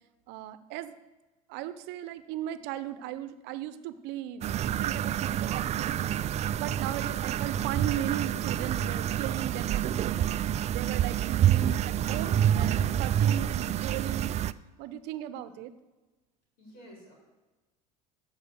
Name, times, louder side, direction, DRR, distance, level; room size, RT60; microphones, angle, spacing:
voice 1, 0.3-1.0 1.5-10.3 10.7-14.4 14.8-15.7, right 11 dB, 60° right, 13 dB, 0.8 m, -37 dB
sound 1, 4.4-14.5, right 10 dB, 35° right, 0.4 m, -28 dB
voice 2, 11.9-12.5 16.6-17.1, equal, 75° left, -3 dB, 4.4 m, -51 dB
13.5 x 5.6 x 6.6 m, 1.2 s
hypercardioid pair, 70°, 19 cm